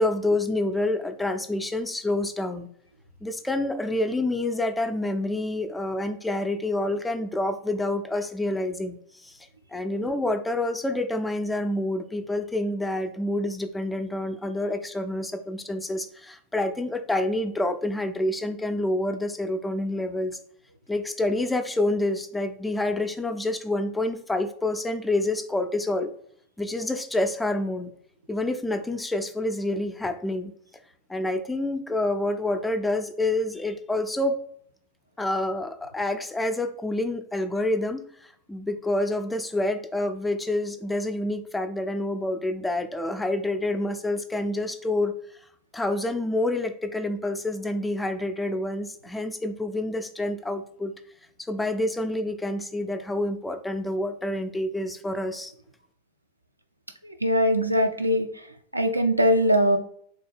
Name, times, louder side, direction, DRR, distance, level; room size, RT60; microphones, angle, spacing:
voice 1, 0.0-2.7 3.2-9.4 9.7-20.4 20.9-26.1 26.6-27.9 28.3-30.5 31.1-34.4 35.2-45.2 45.7-50.9 51.5-55.5, left 1 dB, 5° left, 7 dB, 0.3 m, -28 dB
voice 2, 57.0-58.3 58.7-59.8, equal, 85° right, 6 dB, 0.3 m, -21 dB
3.3 x 2.2 x 3.3 m, 0.63 s
figure-of-eight pair, 90°, 0 cm